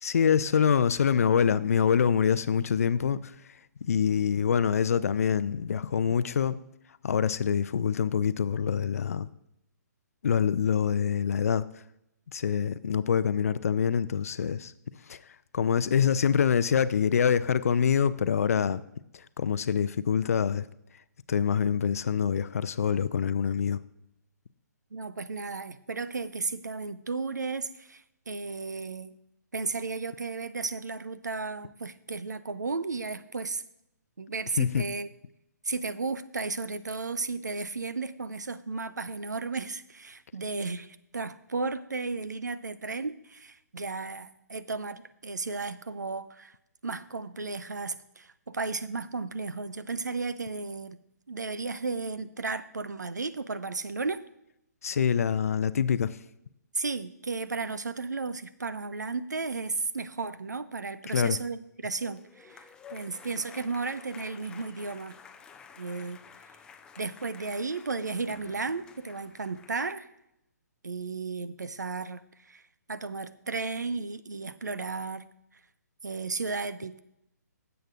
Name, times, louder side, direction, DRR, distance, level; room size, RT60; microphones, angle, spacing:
voice 1, 0.0-3.3 3.9-6.6 7.0-9.3 10.2-11.6 12.3-14.7 15.1-15.2 15.5-18.8 19.4-20.7 21.3-23.8 34.6-34.8 54.8-56.2 61.1-61.4, left 7 dB, 55° left, 15 dB, 0.5 m, -25 dB
voice 2, 24.9-29.1 29.5-33.6 34.2-35.1 35.6-46.5 46.8-51.0 51.3-54.2 56.7-62.6 62.9-65.1 65.8-66.2 67.0-70.1 70.8-72.6 72.9-75.3 76.0-77.0, right 4 dB, 75° right, 14 dB, 0.7 m, -34 dB
sound 1, 61.9-69.7, left 6 dB, 10° left, 0.5 m, -51 dB
16.5 x 7.9 x 2.5 m, 0.82 s
figure-of-eight pair, 130°, 10 cm